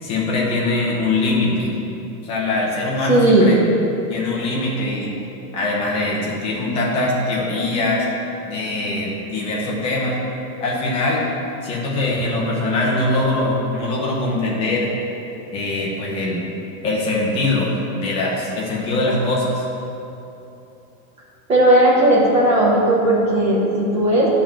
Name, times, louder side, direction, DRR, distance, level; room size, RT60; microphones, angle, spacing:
voice 1, 0.0-1.7 2.2-3.6 4.1-5.1 5.5-8.1 8.5-10.2 10.6-11.2 11.6-14.9 15.5-16.5 16.8-19.7, left 2 dB, 15° left, -4 dB, 0.7 m, -22 dB
voice 2, 3.1-3.5 21.5-24.3, right 1 dB, 15° right, -7 dB, 1.4 m, -15 dB
9.3 x 3.8 x 7.0 m, 3.0 s
supercardioid pair, 175°, 46 cm